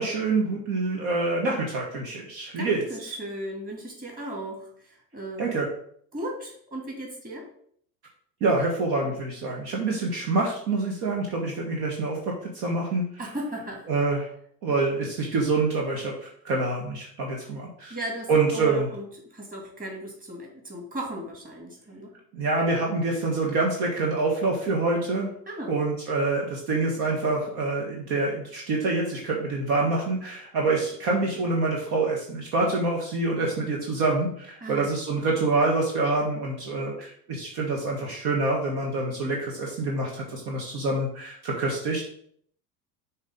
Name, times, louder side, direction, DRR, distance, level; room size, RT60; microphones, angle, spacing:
voice 1, 0.0-2.8 5.4-5.7 8.4-13.1 13.9-14.3 14.6-16.1 16.4-17.9 18.3-18.9 22.3-25.3 25.7-42.2, right 3 dB, 50° right, -1 dB, 1.5 m, -26 dB
voice 2, 2.6-5.5 6.1-7.5 13.2-13.9 14.7-15.1 17.9-22.1 25.5-25.7 34.6-34.9, right 1 dB, 15° right, 0 dB, 2.4 m, -36 dB
7.2 x 3.0 x 5.2 m, 0.63 s
figure-of-eight pair, 75°, 49 cm